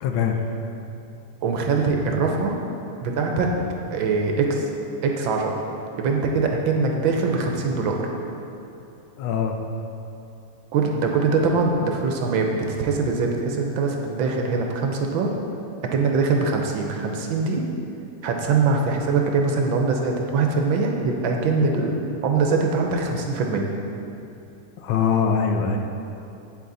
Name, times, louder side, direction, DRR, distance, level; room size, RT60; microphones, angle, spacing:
voice 1, 0.0-0.4 9.2-9.6 24.8-25.8, left 6 dB, 75° left, 4 dB, 1.3 m, -22 dB
voice 2, 1.4-2.5 3.0-3.5 3.9-4.7 5.0-5.5 6.0-8.1 10.7-15.3 15.9-17.6 18.2-23.7, right 4 dB, 70° right, 2 dB, 1.4 m, -22 dB
8.5 x 7.5 x 4.0 m, 2.8 s
omnidirectional pair, 2.4 m